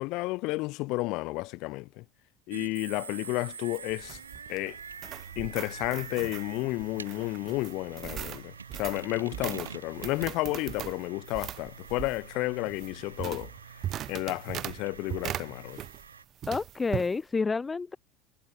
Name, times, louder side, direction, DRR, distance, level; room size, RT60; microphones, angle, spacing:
voice 1, 0.0-2.0 2.5-4.2 4.5-4.8 5.4-13.5 14.1-15.8, left 22 dB, 60° left, 2.0 m, -32 dB
sound 1, 2.5-16.2, right 6 dB, 90° right, 1.3 m, -46 dB
sound 2, 3.5-16.1 16.4-17.1, right 11 dB, 45° right, 0.7 m, -40 dB
voice 2, 16.5-18.0, left 4 dB, 20° left, 0.9 m, -29 dB
hypercardioid pair, 75°, 0 cm